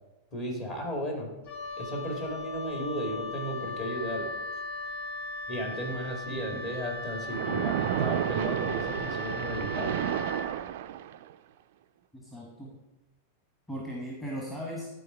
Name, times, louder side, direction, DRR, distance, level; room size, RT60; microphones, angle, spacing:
voice 1, 0.3-1.3 1.8-4.3 5.5-10.0, equal, 35° left, 1 dB, 2.2 m, -34 dB
Wind instrument woodwind instrument, 1.4-10.6, left 2 dB, 60° left, 1.5 m, -38 dB
voice 2, 6.3-6.6 12.1-12.8 13.7-14.9, equal, 15° left, -2 dB, 1.5 m, -38 dB
Splash splatter, 7.3-11.3, right 11 dB, 55° right, 0.3 m, -31 dB
11.5 x 4.1 x 4.6 m, 1.1 s
figure-of-eight pair, 90°, 0 cm